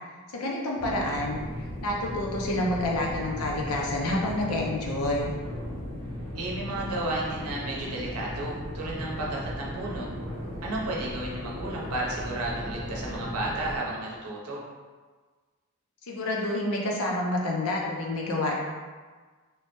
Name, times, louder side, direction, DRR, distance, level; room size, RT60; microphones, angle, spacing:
voice 1, 0.3-1.4 1.8-5.3 16.1-18.5, left 1 dB, 75° left, -2 dB, 0.6 m, -28 dB
sound 1, 0.8-13.8, equal, 40° left, 1.3 m, -36 dB
voice 2, 6.3-10.1 10.6-14.6, right 1 dB, 85° right, -3 dB, 0.7 m, -33 dB
3.2 x 2.1 x 2.9 m, 1.4 s
head